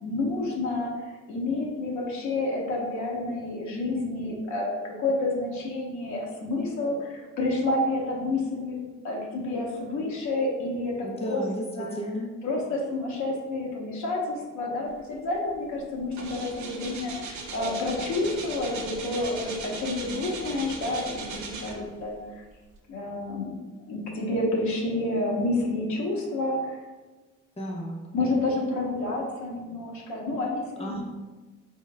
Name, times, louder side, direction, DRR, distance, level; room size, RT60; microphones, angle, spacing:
voice 1, 0.0-0.9 1.3-8.8 9.0-11.4 11.8-12.0 12.4-22.4 22.9-23.5 23.9-26.8 28.1-31.0, left 2 dB, 75° left, -2 dB, 0.9 m, -29 dB
voice 2, 11.0-12.3 27.6-28.0 30.8-31.0, equal, 20° left, -1 dB, 0.9 m, -33 dB
sound 1, 15.3-15.5 15.8-22.1 22.7-22.8, right 4 dB, 70° right, 0.7 m, -38 dB
4.6 x 3.7 x 2.2 m, 1.2 s
cardioid pair, 90°, 30 cm